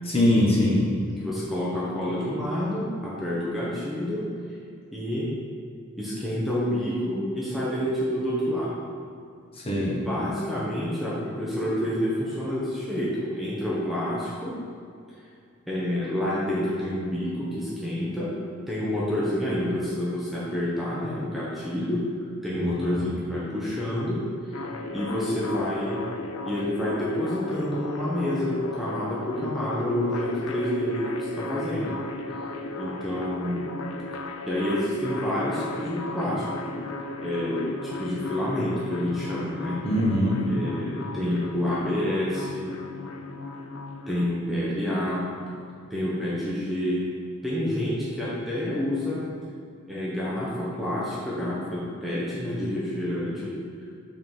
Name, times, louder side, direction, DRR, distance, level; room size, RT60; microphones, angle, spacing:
voice 1, 0.1-0.8 9.6-10.0 22.6-23.1 39.8-40.5, left 1 dB, 25° left, -5 dB, 1.3 m, -22 dB
voice 2, 1.2-4.2 4.9-5.3 6.0-8.7 10.0-14.5 15.7-18.3 18.7-22.0 22.4-24.6 24.9-26.0 26.4-32.0 32.8-33.8 34.4-36.7 37.2-39.8 40.5-42.7 44.1-45.5 45.9-47.0 47.4-49.2 49.9-53.5, left 1 dB, ahead, -8 dB, 1.0 m, -28 dB
static ambient, 24.5-44.3, left 2 dB, 80° left, 0.6 m, -36 dB
5.6 x 4.7 x 5.5 m, 2.3 s
head